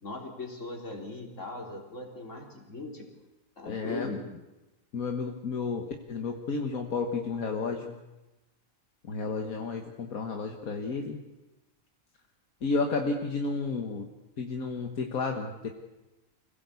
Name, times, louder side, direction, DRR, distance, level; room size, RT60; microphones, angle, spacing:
voice 1, 0.0-3.1 3.6-4.2, left 2 dB, 60° left, 1 dB, 3.9 m, -39 dB
voice 2, 3.7-4.1 4.9-8.0 9.0-11.2 12.6-14.1 14.4-15.7, left 4 dB, 80° left, 3 dB, 1.9 m, -32 dB
25.5 x 17.0 x 8.3 m, 1.0 s
omnidirectional pair, 1.4 m